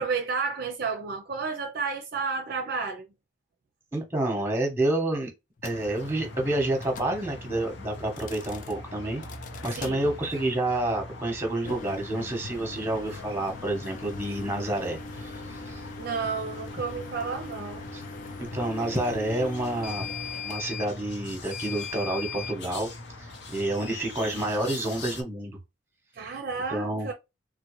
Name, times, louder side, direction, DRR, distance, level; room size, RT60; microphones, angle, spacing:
voice 1, 0.0-3.1 9.8-10.1 16.0-17.8 26.2-27.1, right 5 dB, 50° right, 0.5 m, -31 dB
voice 2, 3.9-5.3 5.6-9.2 9.6-15.8 17.9-18.0 18.4-20.1 20.4-22.9 23.2-25.6 26.7-27.1, right 1 dB, 10° right, 0.9 m, -29 dB
sound 1, 5.6-5.8 6.8-7.1 8.0-8.7 9.2-9.9 11.5-22.6, left 4 dB, 40° left, 0.3 m, -40 dB
sound 2, 5.7-25.2, left 2 dB, 60° left, 0.7 m, -42 dB
3.7 x 2.0 x 3.0 m
head